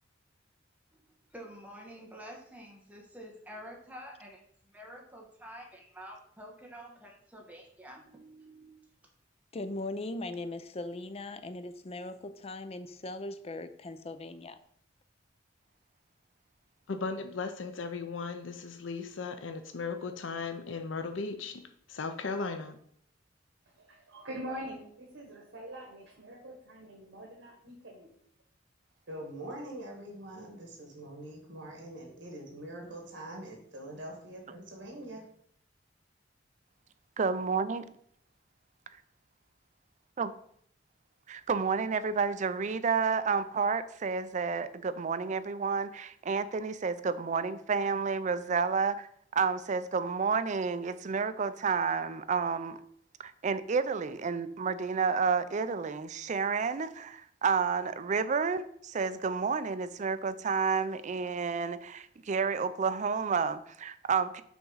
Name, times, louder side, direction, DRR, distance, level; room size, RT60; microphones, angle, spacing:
voice 1, 1.3-8.7, equal, 10° right, 1.3 m, -48 dB
voice 2, 9.5-14.6, left 2 dB, 35° left, 0.5 m, -39 dB
voice 3, 16.9-21.6 21.9-22.8, left 4 dB, 90° left, 0.6 m, -36 dB
voice 4, 23.8-28.1, equal, 85° right, 1.4 m, -44 dB
voice 5, 29.1-35.2, right 1 dB, 70° right, 2.1 m, -44 dB
voice 6, 37.2-37.8 40.2-40.3 41.3-49.1 49.3-52.8 53.2-64.4, right 5 dB, 40° right, 0.4 m, -30 dB
6.0 x 3.6 x 5.5 m
head